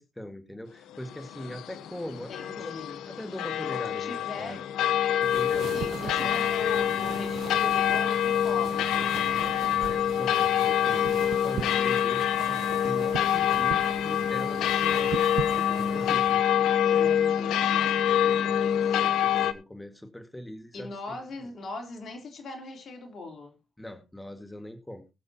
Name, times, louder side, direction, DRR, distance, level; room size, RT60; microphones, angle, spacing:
voice 1, 0.0-4.7 5.2-6.5 9.8-15.4 15.7-16.4 16.9-17.2 18.0-21.2 23.8-25.0, equal, 10° left, 1.8 m, -41 dB
sound 1, 1.0-19.5, left 10 dB, 85° left, 0.8 m, -26 dB
voice 2, 2.3-3.0 3.9-4.7 5.7-9.4 16.8-18.0 20.7-23.6, left 3 dB, 60° left, 3.5 m, -40 dB
sound 2, 5.2-16.4, right 9 dB, 80° right, 0.7 m, -40 dB
21.0 x 7.5 x 2.9 m
supercardioid pair, 65°, 0 cm